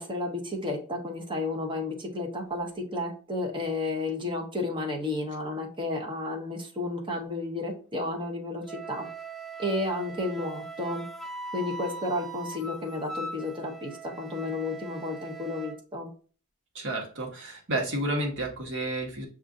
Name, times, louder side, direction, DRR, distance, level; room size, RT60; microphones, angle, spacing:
voice 1, 0.0-9.1 9.6-11.1 11.5-16.1, left 2 dB, 20° right, 2 dB, 0.8 m, -32 dB
Wind instrument woodwind instrument, 8.7-15.8, right 3 dB, ahead, 0.4 m, -40 dB
voice 2, 16.7-19.3, right 1 dB, 55° right, 0 dB, 1.2 m, -31 dB
5.9 x 2.5 x 2.6 m, 0.40 s
head